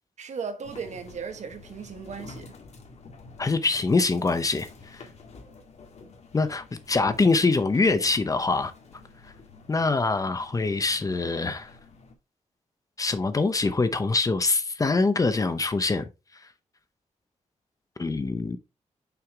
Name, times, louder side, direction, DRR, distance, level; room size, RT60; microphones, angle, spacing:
voice 1, 0.2-2.5, right 6 dB, 70° right, 1.3 m, -36 dB
sound 1, 0.6-12.1, left 4 dB, 60° left, 1.6 m, -49 dB
voice 2, 3.4-5.0 6.3-8.7 9.7-11.7 13.0-16.1 18.0-18.6, left 3 dB, 25° left, 0.7 m, -24 dB
5.9 x 5.6 x 3.4 m
wide cardioid pair, 145°, 13 cm